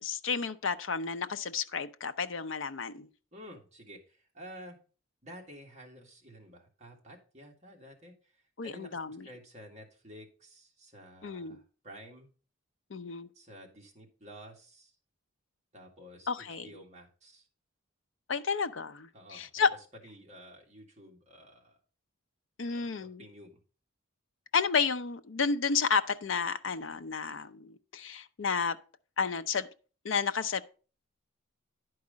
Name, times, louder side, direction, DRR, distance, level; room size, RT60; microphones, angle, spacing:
voice 1, 0.0-3.1 8.6-9.3 11.2-11.6 12.9-13.3 16.3-16.7 18.3-19.7 22.6-23.2 24.5-28.8 29.2-29.7 30.0-30.6, left 5 dB, 60° left, 0.6 m, -31 dB
voice 2, 3.3-4.8 5.2-12.3 13.3-14.9 15.7-17.5 19.1-19.7 20.0-21.8 22.7-23.6, equal, 35° right, 2.0 m, -51 dB
10.5 x 4.7 x 5.1 m
head